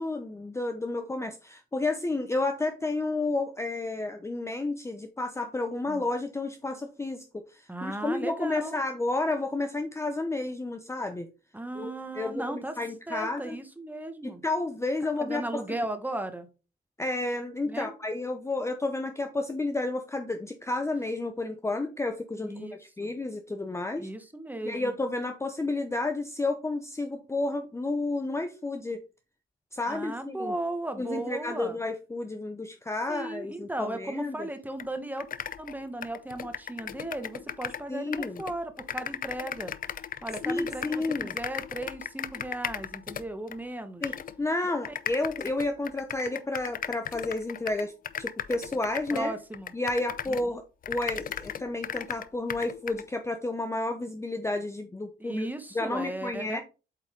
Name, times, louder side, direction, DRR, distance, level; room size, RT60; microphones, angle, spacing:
voice 1, 0.0-11.3 11.8-13.6 14.2-15.6 17.0-24.1 24.6-29.0 29.7-30.5 31.0-34.5 37.9-38.4 40.4-41.3 44.0-49.3 49.7-50.6 50.9-55.5 55.7-56.6, left 2 dB, 15° left, 6 dB, 0.7 m, -31 dB
voice 2, 7.7-8.8 11.5-12.8 13.1-14.4 15.2-16.5 17.7-17.9 22.4-23.1 24.0-24.9 29.9-31.8 33.1-35.3 35.6-39.7 40.2-44.2 44.9-45.0 49.1-49.7 50.3-50.4 55.2-56.6, right 1 dB, 10° right, 8 dB, 1.3 m, -36 dB
sound 1, 34.8-34.9 35.2-37.9 38.1-43.6 44.0-44.4 44.8-50.5 50.8-53.1, left 9 dB, 45° left, 0.5 m, -36 dB
8.1 x 4.1 x 3.7 m, 0.31 s
cardioid pair, 90°, 20 cm